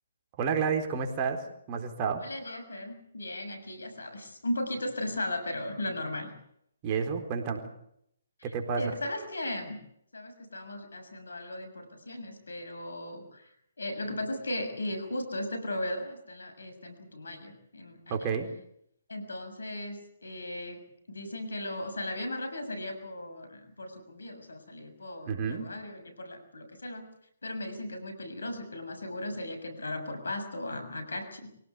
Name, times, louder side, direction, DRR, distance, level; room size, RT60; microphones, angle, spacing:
voice 1, 0.4-2.2 6.8-7.7 8.4-8.9 18.1-18.5 25.3-25.7, right 6 dB, 30° right, 4 dB, 4.1 m, -30 dB
voice 2, 2.2-6.3 8.4-9.8 10.1-13.5 13.8-18.3 19.1-27.1 27.4-31.5, left 1 dB, 80° left, 8 dB, 6.8 m, -37 dB
25.0 x 17.5 x 8.3 m, 0.72 s
figure-of-eight pair, 140°, 0 cm